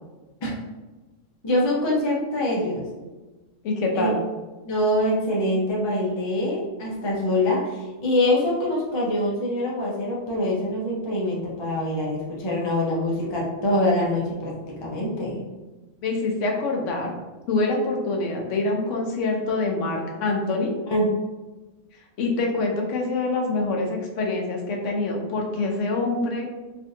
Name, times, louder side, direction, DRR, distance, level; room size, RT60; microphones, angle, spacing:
voice 1, 1.4-2.8 3.9-4.1 4.6-14.5 14.8-15.4 20.9-21.1, left 1 dB, 40° left, -4 dB, 0.4 m, -24 dB
voice 2, 3.6-4.2 16.0-17.1 17.5-20.7 22.2-26.5, left 2 dB, 70° left, 1 dB, 1.0 m, -25 dB
3.4 x 2.5 x 2.6 m, 1.2 s
omnidirectional pair, 1.3 m